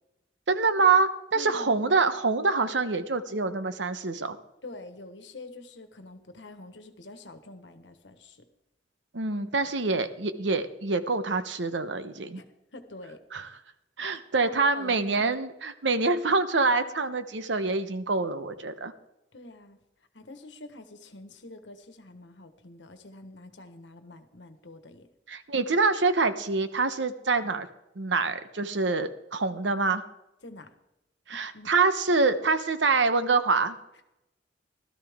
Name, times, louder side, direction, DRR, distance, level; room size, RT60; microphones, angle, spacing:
voice 1, 0.5-4.4 9.1-12.4 13.3-13.5 14.0-18.9 25.3-27.7 28.0-30.0 31.3-33.8, right 4 dB, 85° right, 10 dB, 1.0 m, -26 dB
voice 2, 1.3-1.7 4.6-8.5 12.3-12.5 12.7-13.2 14.0-14.2 14.5-15.3 19.3-19.8 20.1-25.1 30.4-30.7 31.5-31.7, left 2 dB, 75° left, 8 dB, 1.4 m, -46 dB
16.5 x 13.0 x 3.6 m, 0.90 s
head